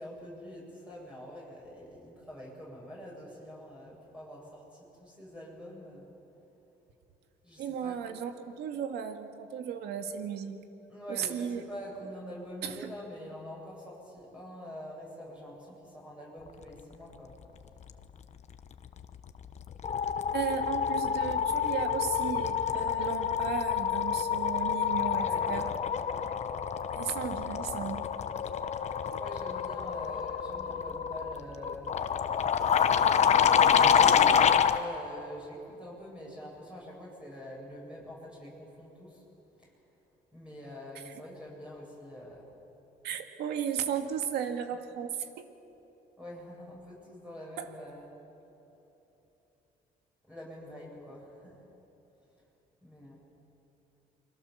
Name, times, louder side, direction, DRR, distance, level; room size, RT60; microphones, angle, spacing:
voice 1, 0.0-6.0 7.4-8.0 10.9-17.3 20.6-20.7 25.1-25.5 29.1-32.0 33.1-39.2 39.6-39.7 40.3-42.5 46.2-48.1 50.2-51.6 52.8-53.2, equal, 5° right, -5 dB, 8.0 m, -45 dB
voice 2, 7.6-10.6 11.1-11.6 12.6-12.9 20.3-25.7 26.2-26.4 26.9-28.1 29.1-29.2 41.1-41.2 43.0-45.5 47.6-47.7, right 8 dB, 75° right, 6 dB, 2.1 m, -35 dB
sound 1, 19.0-19.3 19.6-34.8, left 7 dB, 40° left, 1.1 m, -27 dB
29.0 x 23.5 x 7.3 m, 3.0 s
cardioid pair, 110°, 17 cm